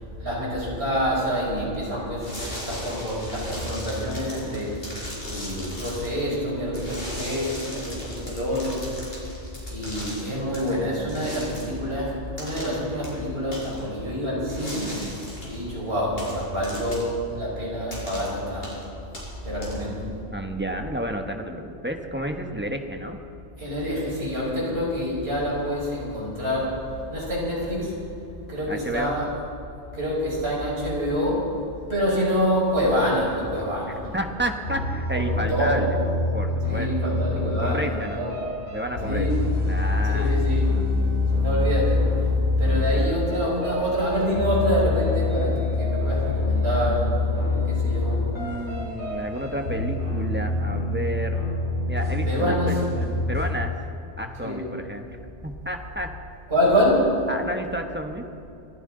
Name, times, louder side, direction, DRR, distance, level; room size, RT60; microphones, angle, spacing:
voice 1, 0.2-2.3 2.6-4.8 5.2-8.9 9.7-15.0 15.5-18.8 19.4-20.0 23.6-27.9 28.5-29.2 29.9-31.6 31.9-34.2 35.1-35.8 36.6-38.3 39.0-39.3 40.1-40.8 41.3-42.2 42.6-48.2 52.3-52.8 54.4-54.6 56.5-57.3, equal, 60° right, -5 dB, 5.5 m, -26 dB
sound 1, 2.2-6.1 6.7-10.7 11.1-11.7 12.4-12.8 13.0-13.1 13.5-13.8 14.5-15.6 16.2-17.1 17.9-18.3 18.6-18.8 19.1-20.0, equal, 55° left, 5.2 m, -38 dB
voice 2, 20.3-23.2 28.7-29.2 34.1-35.9 36.3-36.9 37.6-38.2 38.7-39.3 39.6-40.7 48.3-51.4 51.9-53.7 54.2-55.1 55.4-56.1 57.3-58.2, equal, 10° right, 4 dB, 1.0 m, -31 dB
sound 2, 34.6-53.4, left 2 dB, 70° left, 5.2 m, -25 dB
25.0 x 15.0 x 3.9 m, 2.8 s
omnidirectional pair, 1.2 m